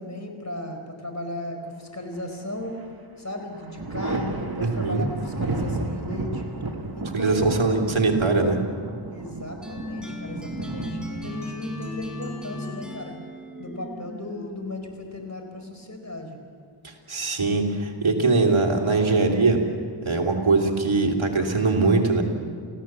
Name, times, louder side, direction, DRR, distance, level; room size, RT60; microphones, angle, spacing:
voice 1, 0.0-2.7 3.2-6.4 7.0-7.8 9.1-13.1 13.6-16.4, left 1 dB, 30° left, 4 dB, 4.5 m, -35 dB
Thunder, 2.1-2.9 3.3-12.9 14.3-15.2, right 2 dB, 45° right, 2.0 m, -33 dB
voice 2, 4.6-5.0 7.1-8.6 16.8-19.6 20.0-22.2, right 3 dB, 70° right, 1 dB, 3.1 m, -21 dB
sound 1, 9.6-14.7, left 1 dB, ahead, 4.6 m, -36 dB
29.0 x 16.0 x 7.5 m, 2.2 s
wide cardioid pair, 45°, 50 cm